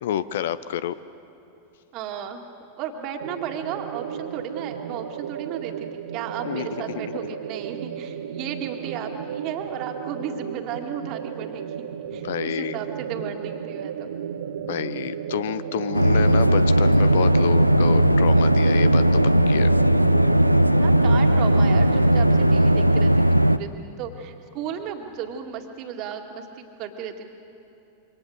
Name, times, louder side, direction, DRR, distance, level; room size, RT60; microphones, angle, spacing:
voice 1, 0.0-1.0 6.4-6.7 7.1-7.2 12.1-12.8 14.6-19.2 19.5-19.7, left 10 dB, 60° left, 16 dB, 0.7 m, -29 dB
voice 2, 1.9-2.4 2.8-11.7 12.1-14.1 20.8-27.3, right 8 dB, 40° right, 4 dB, 2.2 m, -34 dB
sound 1, 3.2-22.9, right 8 dB, 65° right, 1.0 m, -33 dB
sound 2, 15.9-23.6, right 1 dB, 90° right, 0.6 m, -17 dB
27.0 x 24.5 x 6.6 m, 3.0 s
figure-of-eight pair, 90°, 0 cm